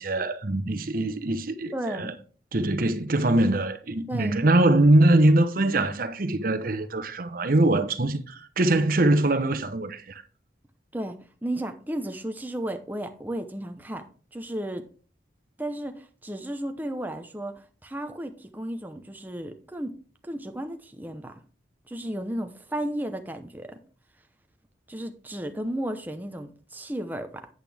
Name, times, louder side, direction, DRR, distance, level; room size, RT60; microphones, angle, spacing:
voice 1, 0.0-2.1 2.5-10.2, right 1 dB, 50° right, 0.8 m, -22 dB
voice 2, 1.7-2.1 4.1-4.4 10.9-11.2 11.4-14.0 14.3-14.9 15.6-19.9 20.2-21.3 21.9-23.8 24.9-27.5, right 1 dB, 10° right, 0.7 m, -34 dB
8.9 x 8.0 x 3.5 m
head